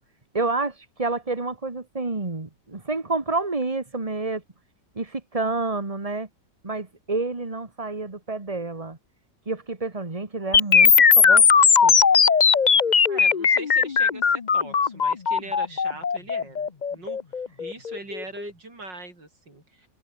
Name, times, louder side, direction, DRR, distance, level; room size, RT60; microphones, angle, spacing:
voice 1, 0.3-4.4 5.0-6.3 6.6-9.0 9.5-11.4 11.8-12.0, right 3 dB, 20° right, 2.0 m, -29 dB
sound 1, 10.5-18.5, left 6 dB, 35° left, 0.7 m, -18 dB
voice 2, 13.1-17.2 17.6-19.9, right 2 dB, 90° right, 7.7 m, -41 dB
open air
omnidirectional pair, 1.9 m